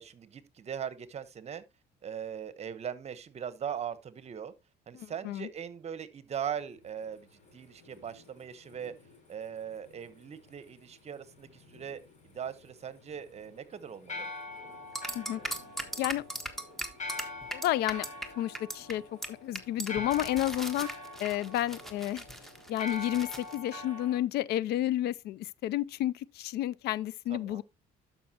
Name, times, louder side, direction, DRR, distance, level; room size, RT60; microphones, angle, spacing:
voice 1, 0.0-1.6 2.0-4.5 4.9-7.3 7.5-8.9 9.3-14.3 20.2-20.3 27.3-27.6, right 8 dB, 40° right, 1.0 m, -40 dB
voice 2, 4.9-5.5 15.1-15.4 16.0-16.2 17.5-18.0 18.4-20.9 21.2-22.2 22.7-27.6, left 13 dB, 75° left, 0.4 m, -31 dB
sound 1, 6.5-24.2, left 3 dB, 45° left, 5.2 m, -45 dB
sound 2, 14.9-18.3 18.5-18.9 19.2-19.3 19.5-23.5, right 1 dB, ahead, 1.3 m, -38 dB
12.0 x 5.7 x 2.8 m
cardioid pair, 110°, 17 cm